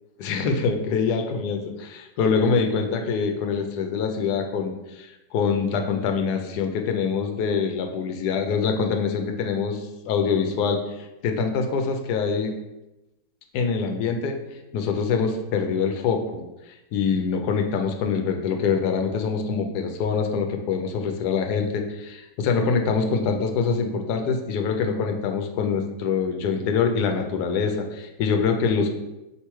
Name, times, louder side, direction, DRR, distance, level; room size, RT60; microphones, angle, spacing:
voice 1, 0.2-10.8 11.2-12.5 13.5-14.4 14.7-16.4 16.9-28.9, left 5 dB, 80° left, 4 dB, 1.1 m, -24 dB
3.2 x 3.0 x 4.5 m, 0.97 s
omnidirectional pair, 1.7 m